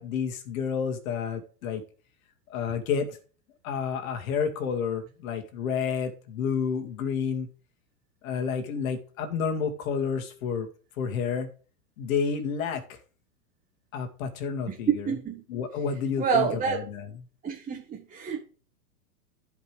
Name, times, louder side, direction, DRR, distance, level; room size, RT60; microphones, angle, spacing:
voice 1, 0.0-1.8 2.5-3.1 3.6-7.5 8.2-10.7 11.0-11.5 12.0-13.0 13.9-15.1 15.5-17.0, left 6 dB, 60° left, 2.3 m, -30 dB
voice 2, 15.0-15.4 16.2-16.8 17.4-18.4, right 5 dB, 15° right, 1.5 m, -28 dB
15.0 x 5.3 x 3.4 m
hypercardioid pair, 130°, 46 cm